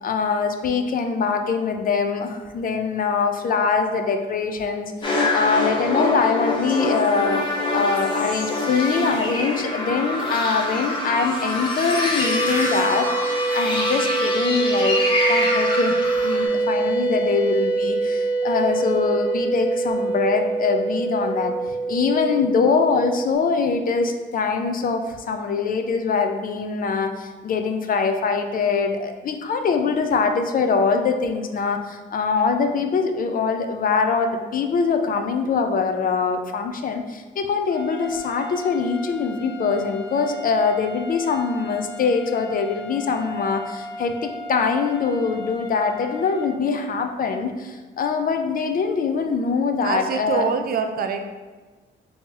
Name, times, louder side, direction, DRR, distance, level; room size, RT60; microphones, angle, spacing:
voice 1, 0.0-7.4 7.7-15.9 16.2-50.5, left 5 dB, 45° left, 6 dB, 0.4 m, -23 dB
sound 1, 5.0-16.5, left 2 dB, 25° left, 0.8 m, -25 dB
sound 2, 12.2-23.3, right 3 dB, 10° right, 0.8 m, -24 dB
sound 3, 37.6-46.5, left 1 dB, 70° left, 1.3 m, -37 dB
voice 2, 49.8-51.3, right 6 dB, 50° right, 6 dB, 0.4 m, -25 dB
2.8 x 2.8 x 3.7 m, 1.3 s
cardioid pair, 90°, 20 cm